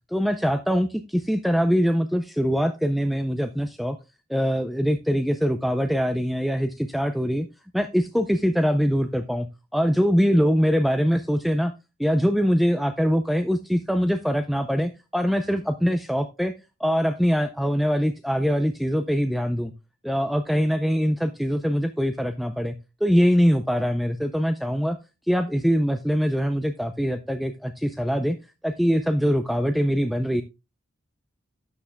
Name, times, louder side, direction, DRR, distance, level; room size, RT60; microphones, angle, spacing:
voice 1, 0.1-4.0 4.3-7.5 7.7-9.5 9.7-11.7 12.0-16.5 16.8-19.7 20.0-22.8 23.0-25.0 25.3-28.4 28.6-30.4, equal, ahead, 7 dB, 0.4 m, -23 dB
12.5 x 8.6 x 2.2 m, 0.28 s
head